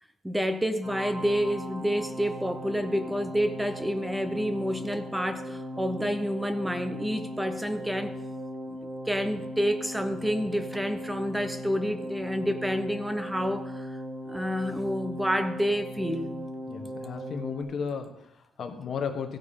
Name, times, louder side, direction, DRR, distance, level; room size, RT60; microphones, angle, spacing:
voice 1, 0.2-8.2 8.7-14.0 14.3-16.3, equal, 5° right, 8 dB, 0.8 m, -29 dB
sound 1, 0.8-17.6, equal, 35° right, 2.6 m, -38 dB
voice 2, 16.7-19.4, left 6 dB, 45° left, 6 dB, 1.2 m, -34 dB
15.5 x 9.4 x 3.7 m, 0.82 s
cardioid pair, 150°, 0 cm